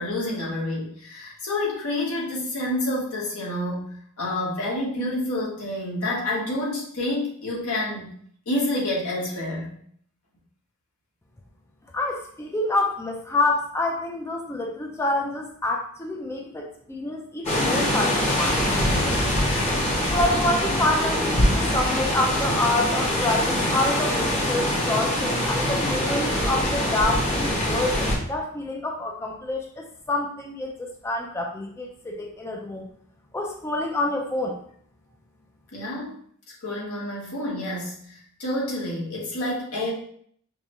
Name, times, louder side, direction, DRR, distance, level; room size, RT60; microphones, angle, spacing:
voice 1, 0.0-8.1 8.5-9.7 35.7-36.2 36.6-39.9, left 1 dB, 80° left, -4 dB, 1.2 m, -28 dB
voice 2, 11.9-18.6 20.1-32.8 33.3-34.6, left 2 dB, 10° left, 0 dB, 0.3 m, -27 dB
sound 1, 17.4-28.2, left 1 dB, 30° left, 1.0 m, -23 dB
5.1 x 2.1 x 2.9 m, 0.63 s
head